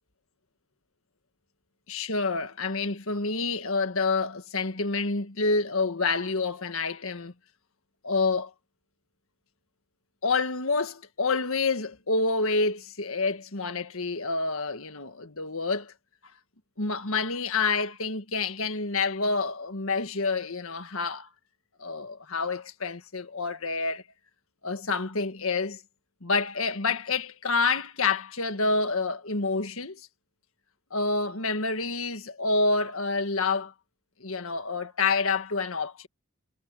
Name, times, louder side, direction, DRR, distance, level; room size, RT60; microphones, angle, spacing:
voice 1, 1.9-7.3 8.0-8.5 10.2-15.9 16.8-21.3 21.8-24.0 24.6-25.8 26.2-30.0 30.9-33.7 34.2-36.1, left 3 dB, 70° left, 1.7 m, -28 dB
head